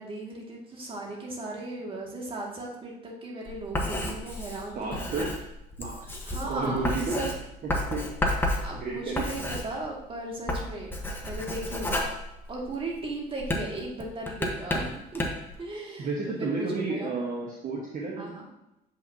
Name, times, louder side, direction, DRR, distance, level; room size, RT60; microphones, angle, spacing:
voice 1, 0.0-5.0 6.2-7.3 8.6-11.0 11.2-12.1 12.5-15.2 15.6-16.1 16.4-17.1 18.2-18.5, right 2 dB, 30° right, -2 dB, 2.1 m, -37 dB
Writing, 3.5-10.1 10.4-12.9 13.4-15.5, left 1 dB, 10° left, 1.1 m, -31 dB
voice 2, 4.7-5.4 5.8-6.0 6.4-7.2 7.6-8.0 8.7-9.3 16.0-18.4, right 3 dB, 50° right, -3 dB, 1.2 m, -31 dB
7.9 x 5.7 x 2.8 m, 0.88 s
cardioid pair, 110°, 17 cm